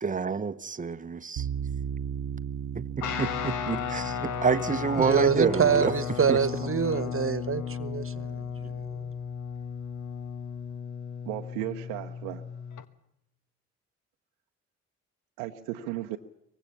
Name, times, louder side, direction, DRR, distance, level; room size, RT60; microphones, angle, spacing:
voice 1, 0.0-1.5 2.7-6.0 6.3-6.5, right 5 dB, 20° right, 0.9 m, -28 dB
sound 1, 1.4-8.5, right 8 dB, 60° right, 1.1 m, -38 dB
Guitar, 3.0-12.8, left 7 dB, 60° left, 1.4 m, -35 dB
voice 2, 5.0-8.9, right 6 dB, 40° right, 1.4 m, -26 dB
voice 3, 11.2-12.4 15.4-16.2, right 14 dB, 80° right, 0.8 m, -35 dB
24.0 x 19.5 x 7.1 m
hypercardioid pair, 45°, 35 cm